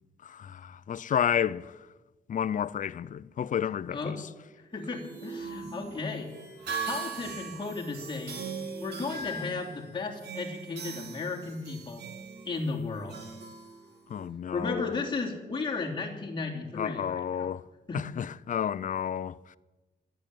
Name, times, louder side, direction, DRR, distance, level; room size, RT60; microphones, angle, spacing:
voice 1, 0.2-1.7 2.3-4.2 14.1-15.0 16.7-17.6 17.9-19.4, left 9 dB, 50° left, 0.5 m, -31 dB
voice 2, 4.6-6.3 6.9-8.5 8.8-12.0 12.4-13.2 14.5-17.5 17.9-18.0, left 3 dB, 30° left, 3.0 m, -34 dB
sound 1, 4.7-14.3, right 4 dB, 75° right, 2.6 m, -40 dB
13.0 x 9.1 x 9.3 m
cardioid pair, 120°, 17 cm